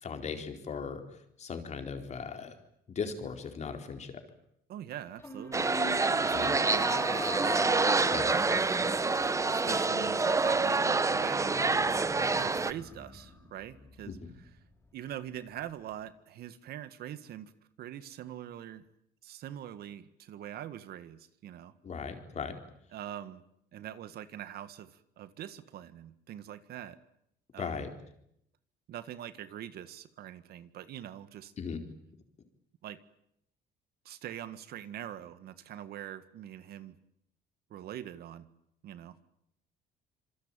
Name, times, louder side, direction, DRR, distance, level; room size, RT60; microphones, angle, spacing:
voice 1, 0.0-1.0 1.4-2.5 2.9-4.1 6.3-6.5 8.1-8.3 14.1-14.3 21.8-22.6 27.6-27.9 31.6-31.8, left 5 dB, 40° left, 6 dB, 4.5 m, -38 dB
voice 2, 4.7-7.6 8.2-8.6 9.5-11.8 12.1-14.5 14.9-17.5 17.8-18.9 19.2-21.7 22.9-23.4 23.7-27.0 27.5-27.9 28.9-31.5 32.8-33.0 34.1-37.0 37.7-38.5 38.8-39.2, right 11 dB, 65° right, 13 dB, 1.7 m, -43 dB
sound 1, 5.2-14.6, left 2 dB, 15° left, 6.3 m, -42 dB
sound 2, 5.5-12.7, right 3 dB, 20° right, 1.0 m, -27 dB
26.5 x 24.0 x 9.0 m, 0.76 s
cardioid pair, 110°, 17 cm